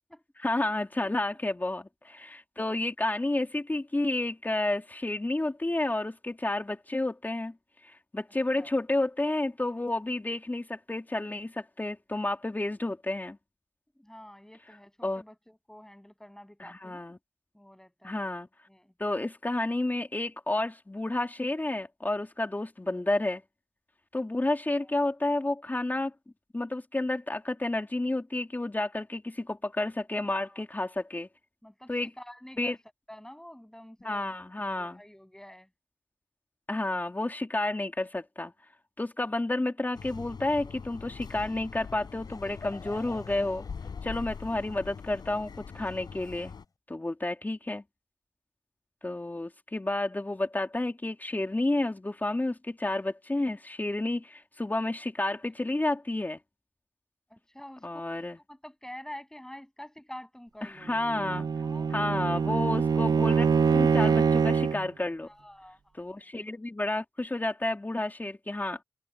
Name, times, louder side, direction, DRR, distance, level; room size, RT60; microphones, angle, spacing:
voice 1, 0.4-7.5 7.8-13.4 14.7-14.8 15.0-15.2 16.6-17.2 18.0-18.5 19.0-23.4 24.1-26.1 26.5-31.3 31.9-32.1 32.6-32.8 34.0-35.0 36.7-38.5 39.0-43.6 44.0-46.5 46.9-47.8 49.0-56.4 57.8-58.4 60.6-61.5 61.9-65.3 65.9-68.8, left 2 dB, 25° left, 3.2 m, -31 dB
voice 2, 14.0-17.1 17.5-18.3 18.7-18.9 24.7-24.8 30.3-30.6 31.6-32.8 33.1-34.3 34.8-35.7 55.4-55.5 57.3-57.9 58.5-60.9 61.6-62.0 65.3-65.8, left 1 dB, 10° left, 7.9 m, -48 dB
sound 1, 39.9-46.6, left 5 dB, 90° left, 4.8 m, -42 dB
Laughter / Crowd, 41.9-46.5, left 4 dB, 60° left, 7.4 m, -49 dB
Bowed string instrument, 61.0-64.9, right 6 dB, 65° right, 0.5 m, -24 dB
wide cardioid pair, 70°, 7 cm